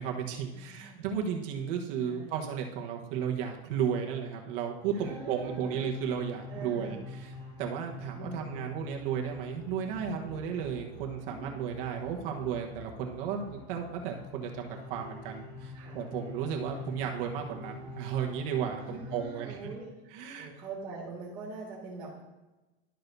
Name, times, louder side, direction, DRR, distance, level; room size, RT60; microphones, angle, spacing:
voice 1, 0.0-7.0 7.6-19.7 20.1-20.5, right 8 dB, 55° right, 1 dB, 1.2 m, -34 dB
voice 2, 0.5-1.0 2.0-2.4 4.9-5.9 6.5-6.9 8.2-8.7 11.2-11.6 15.7-16.0 16.8-17.1 18.8-19.9 20.4-22.2, right 3 dB, 15° right, -12 dB, 2.0 m, -43 dB
sound 1, 4.9-19.2, left 3 dB, 10° left, 2.5 m, -45 dB
11.5 x 6.4 x 2.7 m, 1.1 s
supercardioid pair, 160°, 33 cm